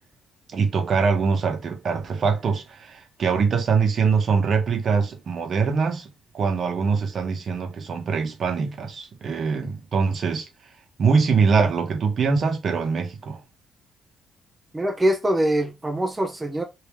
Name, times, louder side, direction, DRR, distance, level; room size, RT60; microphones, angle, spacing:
voice 1, 0.5-6.1 6.3-10.5 11.0-13.4, right 5 dB, 55° right, 1.1 m, -23 dB
voice 2, 14.7-16.6, right 1 dB, 20° right, 0.7 m, -23 dB
3.5 x 2.8 x 3.1 m
supercardioid pair, 65°, 0 cm